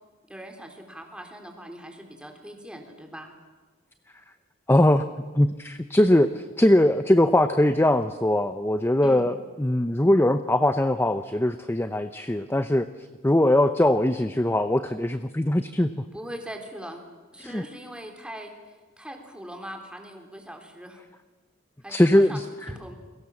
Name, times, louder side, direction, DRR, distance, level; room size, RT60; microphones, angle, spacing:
voice 1, 0.3-3.3 9.0-9.2 16.1-17.0 17.3-18.5 19.0-21.0 21.8-22.4 22.7-22.9, equal, 5° right, 4 dB, 3.7 m, -40 dB
voice 2, 4.7-5.1 5.3-12.9 13.2-16.0 17.4-17.6 21.9-22.7, left 1 dB, 10° left, 10 dB, 0.7 m, -21 dB
29.0 x 23.0 x 7.3 m, 1.3 s
head